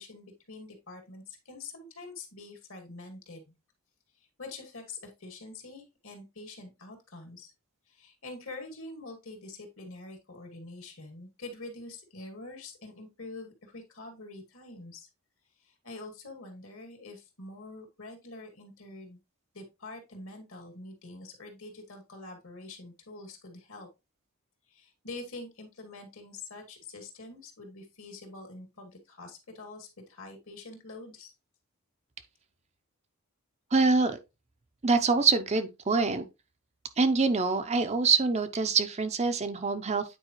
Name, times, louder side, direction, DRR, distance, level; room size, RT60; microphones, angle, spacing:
voice 1, 0.0-3.5 4.4-7.5 7.9-15.1 15.6-19.2 19.5-23.9 24.7-31.3, left 2 dB, 65° left, 2.2 m, -45 dB
voice 2, 33.7-34.2 34.8-36.2 37.0-40.0, right 4 dB, 30° right, 0.6 m, -25 dB
9.0 x 4.6 x 3.0 m
head